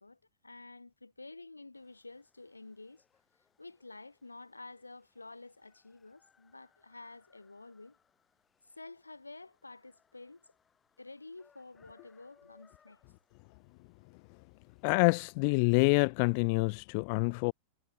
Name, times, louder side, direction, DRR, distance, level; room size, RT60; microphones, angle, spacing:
voice 1, 0.0-3.0 3.6-7.9 8.6-10.5 11.0-13.0, left 3 dB, 80° left, 1.7 m, -50 dB
sound 1, 1.7-15.5, left 6 dB, 20° left, 7.0 m, -70 dB
voice 2, 14.8-17.5, left 34 dB, 45° left, 0.3 m, -27 dB
figure-of-eight pair, 90°, 0 cm